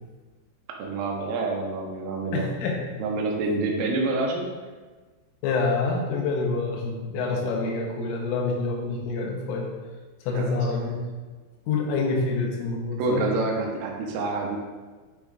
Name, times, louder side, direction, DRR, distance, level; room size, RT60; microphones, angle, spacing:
voice 1, 0.8-2.4 3.0-4.5 10.3-10.6 13.0-14.6, right 3 dB, 90° right, 0 dB, 3.4 m, -27 dB
voice 2, 2.3-2.8 5.4-9.7 10.3-11.1 11.7-13.3, left 3 dB, 85° left, 1 dB, 3.5 m, -27 dB
10.5 x 5.4 x 2.4 m, 1.3 s
omnidirectional pair, 5.7 m